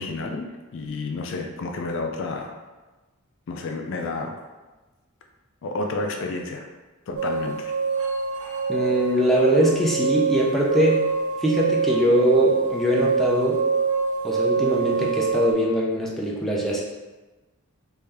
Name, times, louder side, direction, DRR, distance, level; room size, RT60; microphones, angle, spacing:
voice 1, 0.0-2.5 3.5-4.4 5.6-6.7 7.1-7.7, left 3 dB, 60° left, 3 dB, 0.4 m, -30 dB
sound 1, 7.1-15.5, right 5 dB, 80° right, 1.0 m, -25 dB
voice 2, 8.7-11.0 11.4-13.6 14.2-16.8, equal, ahead, -4 dB, 0.5 m, -22 dB
3.5 x 2.7 x 3.3 m, 1.2 s
head